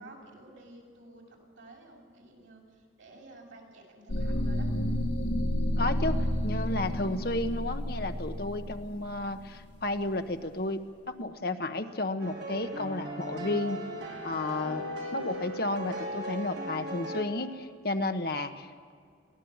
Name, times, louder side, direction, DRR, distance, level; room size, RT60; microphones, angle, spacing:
voice 1, 0.0-4.7, right 2 dB, 80° right, -1 dB, 7.0 m, -52 dB
sound 1, 4.1-10.1, equal, 70° left, 1.8 m, -31 dB
voice 2, 5.8-13.8 14.2-14.8 15.1-18.9, left 2 dB, 55° left, 7 dB, 1.1 m, -32 dB
sound 2, 12.2-17.2, equal, 65° right, 4.5 m, -37 dB
23.0 x 17.5 x 7.2 m, 2.2 s
head